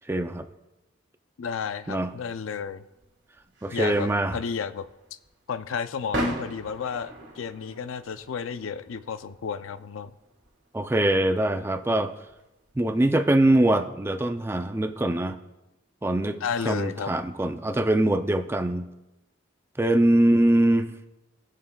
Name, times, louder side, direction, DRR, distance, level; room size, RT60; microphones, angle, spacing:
voice 1, 0.1-0.5 1.9-2.1 3.6-4.4 10.7-12.1 12.8-15.4 16.0-18.8 19.8-20.9, right 1 dB, 10° right, 9 dB, 0.3 m, -23 dB
voice 2, 1.4-2.8 3.7-4.9 5.5-10.1 16.4-17.1 20.3-20.4, left 6 dB, 80° left, 12 dB, 0.4 m, -32 dB
sound 1, 2.2-13.5, right 1 dB, 55° right, 1.8 m, -40 dB
18.5 x 6.5 x 2.3 m, 0.99 s
head